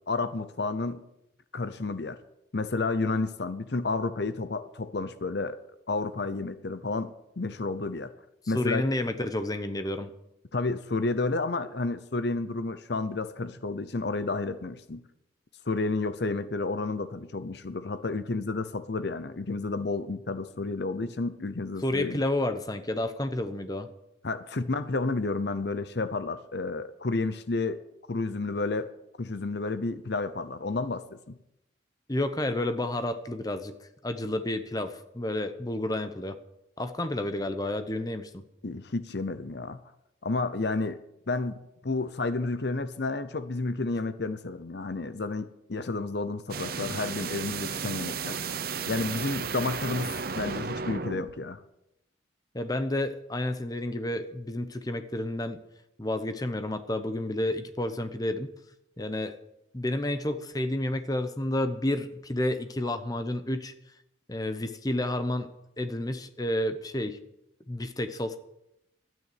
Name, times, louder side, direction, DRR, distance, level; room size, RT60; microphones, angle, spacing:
voice 1, 0.1-1.0 1.5-2.2 2.5-5.6 5.9-8.1 8.5-8.9 10.5-15.0 15.7-22.2 24.2-27.8 28.1-28.9 29.2-31.4 38.6-39.8 40.2-41.0 41.3-48.4 48.9-51.6, left 3 dB, 60° left, 12 dB, 0.7 m, -31 dB
voice 2, 8.5-10.1 21.8-23.9 32.1-33.7 34.0-36.4 36.8-38.4 52.5-55.6 56.0-58.5 59.0-59.3 59.7-63.7 64.3-65.5 65.8-67.2 67.7-68.4, left 1 dB, 20° left, 9 dB, 0.9 m, -30 dB
sound 1, 46.5-51.3, right 5 dB, 50° right, 0.8 m, -34 dB
12.5 x 9.3 x 8.4 m, 0.83 s
head